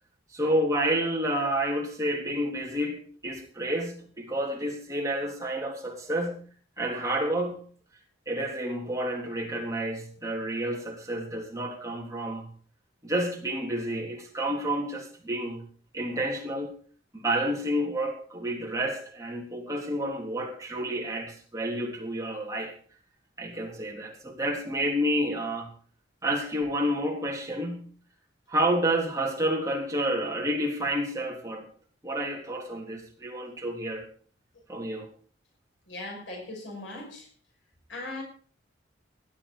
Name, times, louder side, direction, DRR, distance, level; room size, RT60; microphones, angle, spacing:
voice 1, 0.3-6.4 6.8-7.6 8.3-12.5 13.0-15.7 15.9-16.7 17.1-22.8 23.4-25.7 26.2-27.9 28.5-31.7 32.0-34.1 34.7-35.1, right 1 dB, 15° right, 0 dB, 3.6 m, -30 dB
voice 2, 35.9-37.3 37.9-38.2, left 2 dB, 75° left, 1 dB, 5.5 m, -38 dB
17.0 x 11.5 x 5.0 m, 0.43 s
head